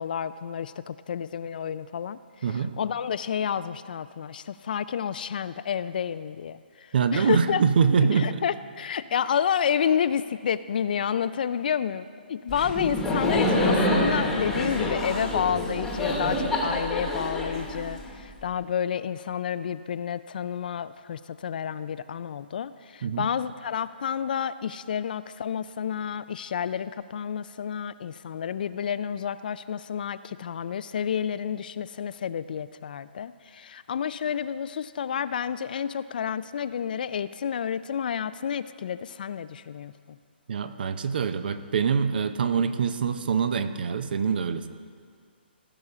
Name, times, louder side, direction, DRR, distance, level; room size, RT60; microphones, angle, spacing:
voice 1, 0.0-2.2 2.5-7.6 8.1-40.2, left 8 dB, 55° left, 14 dB, 0.3 m, -30 dB
voice 2, 2.4-2.7 6.9-8.3 23.0-23.3 40.5-44.7, right 6 dB, 55° right, 11 dB, 0.6 m, -24 dB
Laughter, 12.5-18.3, left 1 dB, 5° left, 1.2 m, -27 dB
16.0 x 5.5 x 4.9 m, 2.1 s
hypercardioid pair, 155°, 6 cm